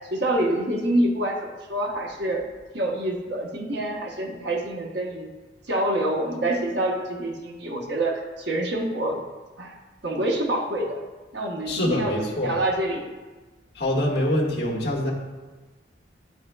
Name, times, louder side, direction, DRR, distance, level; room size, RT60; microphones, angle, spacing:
voice 1, 0.1-2.4 2.7-5.3 5.7-9.2 9.6-9.8 10.0-11.0 11.3-13.1, right 1 dB, 65° right, 1 dB, 1.0 m, -26 dB
voice 2, 11.7-12.5 13.7-15.1, left 1 dB, 60° left, -3 dB, 1.5 m, -24 dB
11.0 x 4.3 x 2.2 m, 1.2 s
head